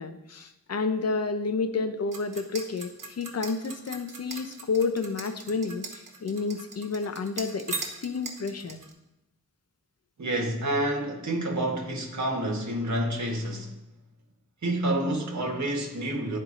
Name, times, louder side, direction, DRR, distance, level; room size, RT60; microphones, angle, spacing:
voice 1, 0.0-8.8, left 4 dB, 50° left, 0.6 m, -30 dB
sound 1, 2.1-8.9, right 4 dB, 90° right, 1.1 m, -39 dB
voice 2, 10.2-13.7 14.6-16.4, right 1 dB, 60° right, 1.4 m, -28 dB
12.0 x 4.6 x 2.6 m
wide cardioid pair, 95°, 32 cm